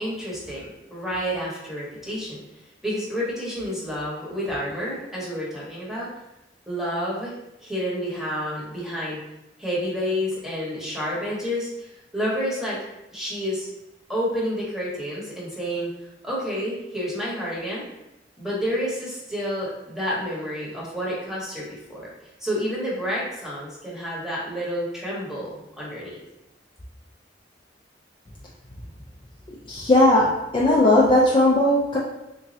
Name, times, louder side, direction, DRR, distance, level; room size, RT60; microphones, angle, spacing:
voice 1, 0.0-2.4 2.8-6.1 6.7-7.3 7.6-9.2 9.6-11.9 12.1-12.8 13.1-13.7 14.1-15.9 16.2-17.8 18.4-22.1 22.4-26.2, equal, ahead, -6 dB, 1.0 m, -29 dB
voice 2, 29.7-32.0, left 1 dB, 25° left, -4 dB, 0.4 m, -18 dB
3.6 x 3.0 x 2.7 m, 0.93 s
head